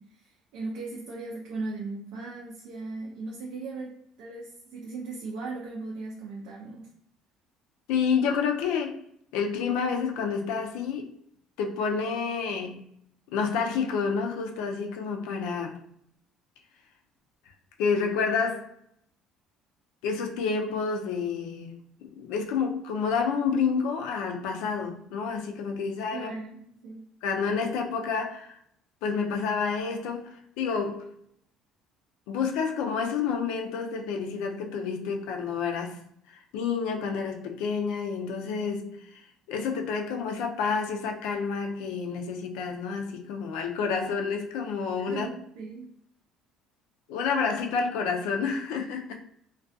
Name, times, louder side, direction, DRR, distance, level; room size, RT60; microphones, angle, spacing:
voice 1, 0.0-6.9 26.1-27.1 45.0-45.9, right 3 dB, 80° right, 0.5 m, -38 dB
voice 2, 7.9-9.0 9.3-11.1 11.6-12.9 13.3-15.8 17.8-18.7 20.0-26.3 27.2-28.6 29.0-31.1 32.3-36.0 36.3-45.3 47.1-49.2, left 5 dB, 90° left, 0.4 m, -29 dB
2.3 x 2.2 x 2.6 m
cardioid pair, 140°, 0 cm